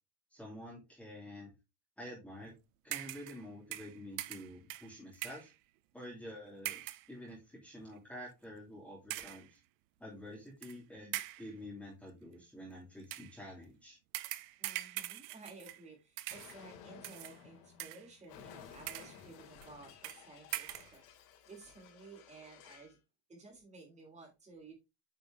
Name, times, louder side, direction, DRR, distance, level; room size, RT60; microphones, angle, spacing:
voice 1, 0.3-1.5 2.0-2.5 2.8-5.5 5.9-9.6 10.0-14.0, left 1 dB, 5° left, 2.6 m, -49 dB
sound 1, 2.9-3.4 3.7-5.5 6.6-7.1 7.8-8.0 9.1-9.5 10.6-10.7 11.1-11.5 13.0-13.4 14.1-15.9 16.2-16.6 17.0-17.4 17.8-18.2 18.7-19.2 19.6-19.7 20.0-20.2 20.5-20.9, right 17 dB, 45° right, 0.6 m, -42 dB
voice 2, 14.6-21.0 21.4-23.0 23.3-24.7, right 3 dB, 15° right, 3.2 m, -54 dB
Explosion, 16.3-23.0, left 8 dB, 85° left, 3.1 m, -56 dB
8.8 x 5.2 x 3.4 m
cardioid pair, 175°, 49 cm